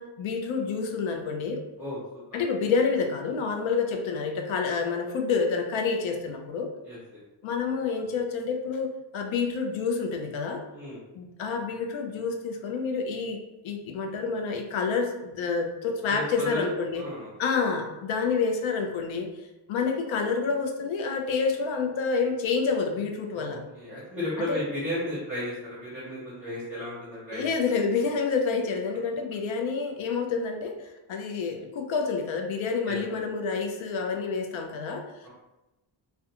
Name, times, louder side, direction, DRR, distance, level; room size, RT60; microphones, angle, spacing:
voice 1, 0.0-1.6 2.3-6.7 7.4-10.6 11.1-17.0 17.4-19.3 19.7-23.6 24.5-24.6 27.3-35.3, left 5 dB, 75° left, 4 dB, 0.6 m, -28 dB
voice 2, 16.0-17.3 23.3-27.5 32.9-33.0 35.2-35.3, left 1 dB, 5° right, -9 dB, 0.8 m, -34 dB
2.4 x 2.2 x 2.7 m, 1.0 s
wide cardioid pair, 140°, 48 cm